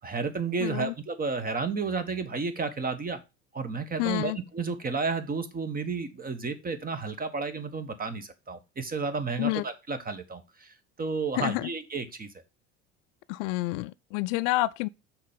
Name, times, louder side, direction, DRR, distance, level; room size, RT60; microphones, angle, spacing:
voice 1, 0.0-3.2 3.5-12.3, right 4 dB, 25° right, 1.3 m, -32 dB
voice 2, 0.6-0.9 4.0-4.4 9.4-9.6 11.4-11.6 13.3-14.9, left 20 dB, 55° left, 0.5 m, -28 dB
6.4 x 4.5 x 5.1 m
hypercardioid pair, 75°, 37 cm